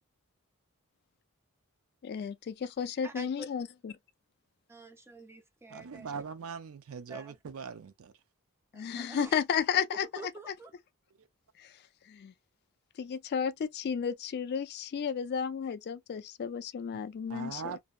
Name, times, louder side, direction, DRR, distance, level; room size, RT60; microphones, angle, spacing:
voice 1, 2.0-3.9 8.7-10.1 11.6-11.7 12.1-12.3 13.0-17.7, left 7 dB, 45° left, 0.3 m, -33 dB
voice 2, 3.0-3.5 4.7-6.2 7.1-7.3 8.7-9.3 9.7-10.7, right 1 dB, 10° right, 0.5 m, -46 dB
voice 3, 5.7-8.1 11.2-11.3 17.3-17.8, right 6 dB, 65° right, 0.4 m, -41 dB
2.6 x 2.1 x 2.2 m
head